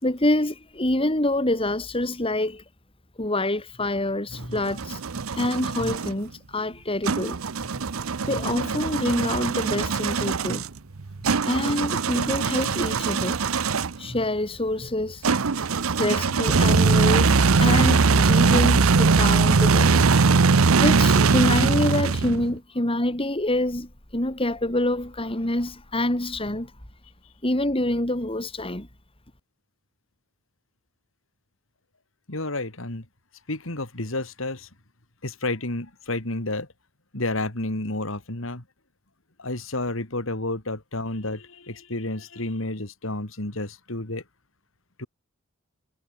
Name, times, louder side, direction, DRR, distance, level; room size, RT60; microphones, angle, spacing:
voice 1, 0.0-2.6 3.2-5.0 5.3-7.7 8.2-10.6 11.4-13.4 14.0-15.2 16.0-20.1 20.8-26.7 27.4-28.9, left 1 dB, 25° left, 3.6 m, -26 dB
sound 1, 4.3-6.1 7.0-14.1 15.2-22.5, right 4 dB, 80° right, 0.8 m, -21 dB
voice 2, 32.3-33.0 33.5-34.7 35.2-36.7 37.1-38.6 39.4-44.2 45.0-45.1, left 2 dB, 70° left, 3.2 m, -30 dB
head